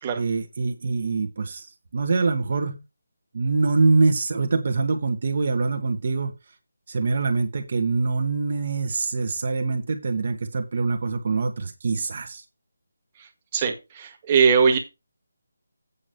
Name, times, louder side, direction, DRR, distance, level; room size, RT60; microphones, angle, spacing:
voice 1, 0.1-1.7 1.9-2.8 3.3-6.3 6.9-12.4, right 3 dB, 45° right, 6 dB, 1.7 m, -24 dB
voice 2, 13.5-14.8, right 6 dB, 20° right, 3 dB, 1.9 m, -20 dB
8.7 x 6.1 x 5.4 m, 0.25 s
figure-of-eight pair, 170°, 0 cm